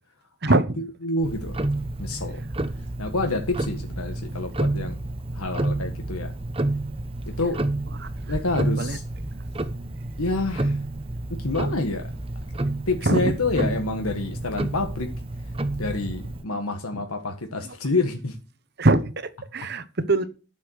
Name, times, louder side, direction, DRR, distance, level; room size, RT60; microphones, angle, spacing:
voice 1, 0.4-0.8 7.9-8.1 8.8-9.0 13.0-13.3 16.9-17.0 18.8-20.2, right 2 dB, 45° right, 1.1 m, -23 dB
voice 2, 1.0-1.6 2.0-2.4 3.0-5.0 5.3-6.3 7.4-7.6 8.3-9.0 10.2-10.8 11.3-12.1 12.9-15.1 15.8-18.4, left 2 dB, 85° left, 1.6 m, -27 dB
Tick-tock, 1.2-16.4, right 2 dB, 25° right, 0.9 m, -30 dB
12.0 x 7.2 x 6.4 m
head